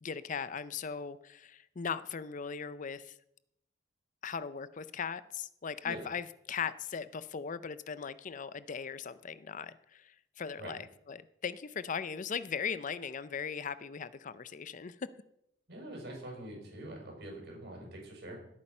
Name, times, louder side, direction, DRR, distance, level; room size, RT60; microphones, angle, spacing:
voice 1, 0.0-3.2 4.2-15.1, left 6 dB, 40° left, 16 dB, 0.5 m, -39 dB
voice 2, 15.7-18.4, right 1 dB, 55° right, 0 dB, 6.0 m, -44 dB
18.5 x 8.6 x 5.5 m, 0.79 s
head